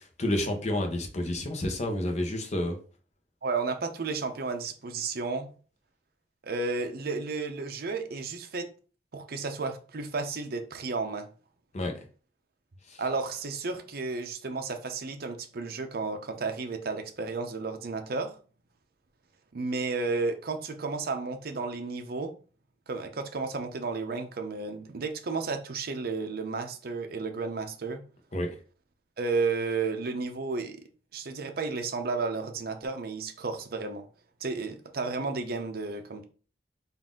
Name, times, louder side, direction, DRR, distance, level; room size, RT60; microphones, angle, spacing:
voice 1, 0.2-2.8 11.7-11.9 28.3-28.5, left 1 dB, 40° left, 0.8 m, -29 dB
voice 2, 3.4-5.5 6.4-8.7 9.1-11.3 13.0-18.3 19.5-22.3 22.9-28.0 29.2-34.0 34.4-36.3, right 4 dB, 55° right, 0.6 m, -32 dB
3.9 x 2.5 x 3.6 m
head